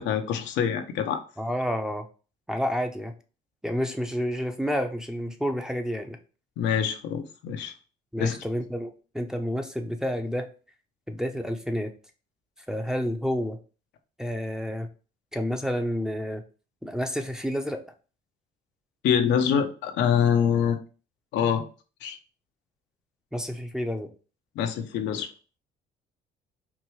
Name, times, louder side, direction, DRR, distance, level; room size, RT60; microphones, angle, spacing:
voice 1, 0.0-1.2 6.6-7.7 8.2-8.4 19.0-20.8 21.3-21.6 22.0-22.2 24.6-25.3, left 8 dB, 75° left, 6 dB, 0.7 m, -25 dB
voice 2, 1.4-2.1 2.5-3.1 3.6-6.2 8.1-10.5 11.1-11.9 12.7-13.6 14.2-14.9 15.3-16.4 16.8-17.8 23.3-24.1, equal, 5° right, 4 dB, 0.7 m, -29 dB
4.6 x 2.6 x 3.1 m, 0.35 s
supercardioid pair, 80°, 18 cm